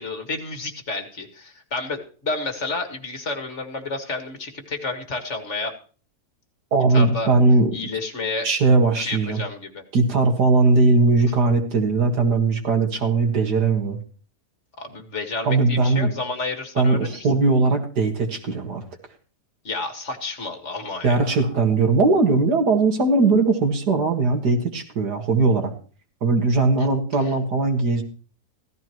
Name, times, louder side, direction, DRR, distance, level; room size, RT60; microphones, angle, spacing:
voice 1, 0.0-5.7 6.9-7.3 7.7-8.5 9.0-9.8 14.8-17.3 19.6-21.3 26.8-26.9, left 3 dB, 45° left, 4 dB, 2.1 m, -30 dB
voice 2, 6.7-7.7 8.4-9.4 9.9-14.0 15.4-16.1 16.8-18.8 21.0-25.7 26.2-28.0, right 3 dB, 85° right, 3 dB, 2.4 m, -19 dB
16.0 x 14.0 x 3.1 m, 0.39 s
omnidirectional pair, 1.7 m